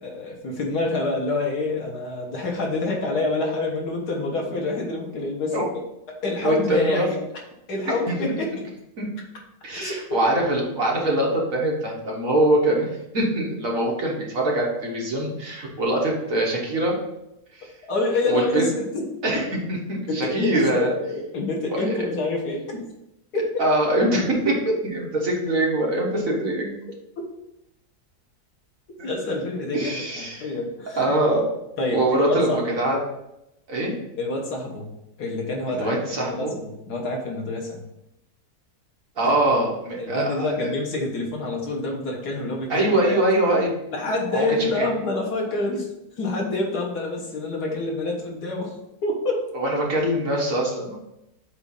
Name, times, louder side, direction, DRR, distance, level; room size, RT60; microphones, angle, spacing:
voice 1, 0.0-5.5 6.2-7.2 7.7-8.5 9.7-10.3 17.9-19.1 20.1-22.9 23.3-23.7 29.0-31.3 31.8-32.6 34.2-34.9 35.2-37.8 39.2-39.3 40.0-43.2 43.9-45.9 46.2-48.7 49.0-49.4, left 2 dB, 80° left, -1 dB, 1.9 m, -27 dB
voice 2, 6.4-7.1 7.9-8.2 9.0-9.1 9.6-16.9 17.5-17.7 18.3-18.7 19.2-20.9 21.7-22.0 23.6-26.8 29.0-29.1 29.7-30.5 31.0-31.4 31.9-33.0 33.7-33.9 35.7-36.5 39.2-40.7 42.7-43.7 44.3-44.9 49.5-51.0, right 1 dB, 60° right, -2 dB, 1.8 m, -23 dB
7.8 x 2.7 x 5.4 m, 0.87 s
omnidirectional pair, 1.7 m